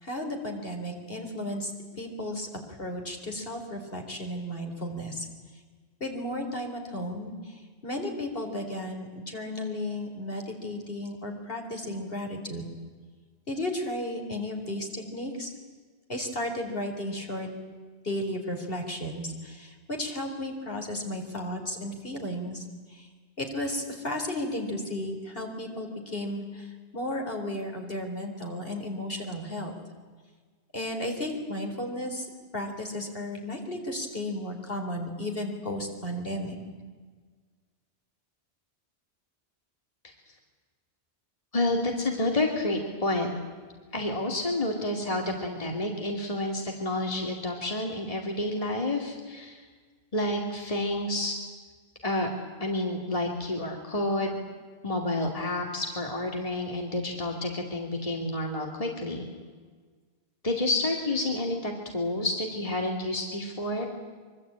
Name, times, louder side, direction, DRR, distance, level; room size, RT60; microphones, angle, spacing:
voice 1, 0.0-1.7 2.0-2.5 2.8-5.3 6.0-12.7 13.5-15.5 16.1-17.5 18.0-23.1 23.4-29.7 30.7-32.3 32.5-36.6, left 1 dB, 55° left, 3 dB, 4.2 m, -34 dB
voice 2, 41.5-43.3 43.9-49.6 50.1-51.3 52.0-52.3 52.6-54.4 54.8-59.3 60.4-63.9, left 2 dB, 30° left, 1 dB, 2.7 m, -29 dB
24.5 x 24.0 x 8.9 m, 1.5 s
omnidirectional pair, 1.1 m